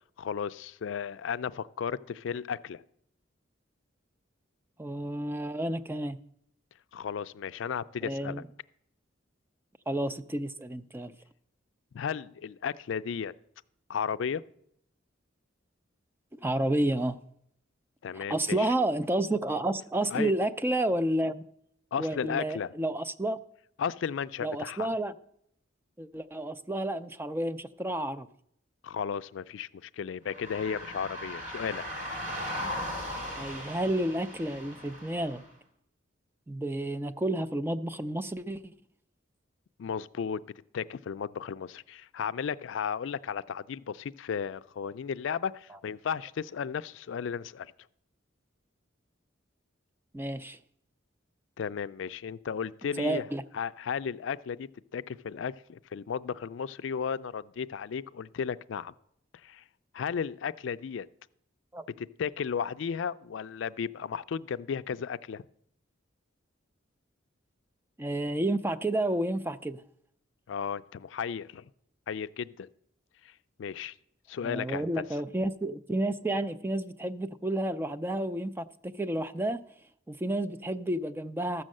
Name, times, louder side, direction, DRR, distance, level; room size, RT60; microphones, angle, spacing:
voice 1, 0.2-2.8 6.9-8.4 11.9-13.3 13.9-14.4 18.0-18.7 20.1-20.3 21.9-22.7 23.8-24.9 28.8-31.8 39.8-40.4 40.7-47.7 51.6-53.2 53.5-58.9 59.4-59.6 59.9-61.1 62.0-65.4 70.5-71.7 72.1-72.7 73.2-73.3 73.6-73.9 74.3-75.0, left 7 dB, 70° left, 0.4 m, -34 dB
voice 2, 4.8-6.2 8.0-8.4 9.9-11.1 16.3-17.2 18.3-21.4 22.0-23.4 24.4-25.1 26.0-28.3 33.4-35.4 36.5-38.6 50.1-50.6 53.0-53.4 61.7-61.8 68.0-69.8 74.4-78.7 79.0-79.6 80.1-81.6, right 1 dB, 10° right, 0.4 m, -30 dB
sound 1, 30.3-35.5, equal, 40° right, 2.7 m, -38 dB
13.5 x 6.3 x 7.6 m
head